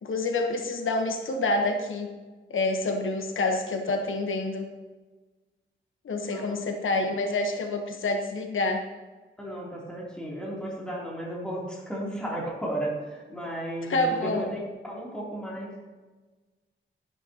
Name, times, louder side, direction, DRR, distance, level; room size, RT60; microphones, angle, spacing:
voice 1, 0.0-2.1 2.5-4.7 6.0-8.9 13.9-14.5, left 2 dB, 85° left, 4 dB, 1.1 m, -27 dB
voice 2, 6.1-6.6 9.4-15.7, right 1 dB, 5° left, -5 dB, 3.0 m, -34 dB
12.0 x 11.5 x 2.9 m, 1.3 s
wide cardioid pair, 170°, 20 cm